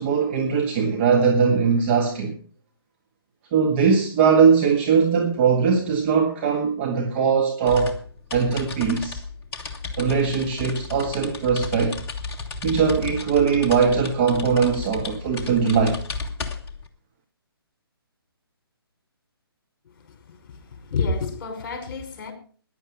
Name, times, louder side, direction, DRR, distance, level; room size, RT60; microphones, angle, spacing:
voice 1, 0.0-2.4 3.5-8.0 8.3-9.2 10.0-12.0 12.6-16.0, right 6 dB, 30° right, 1.6 m, -20 dB
sound 1, 7.7-16.9, left 4 dB, 15° left, 1.5 m, -34 dB
voice 2, 20.3-22.3, left 4 dB, 40° left, 5.3 m, -29 dB
15.0 x 11.0 x 4.9 m
figure-of-eight pair, 140°, 13 cm